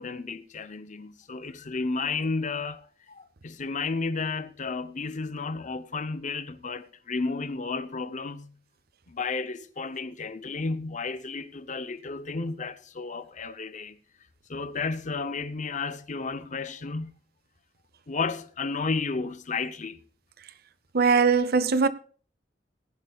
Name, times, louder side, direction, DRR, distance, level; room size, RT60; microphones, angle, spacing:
voice 1, 0.0-8.6 9.1-14.0 14.5-17.1 18.1-20.0, left 4 dB, 45° left, 0.8 m, -32 dB
voice 2, 20.9-21.9, right 5 dB, 60° right, 0.7 m, -20 dB
18.0 x 11.0 x 2.4 m
head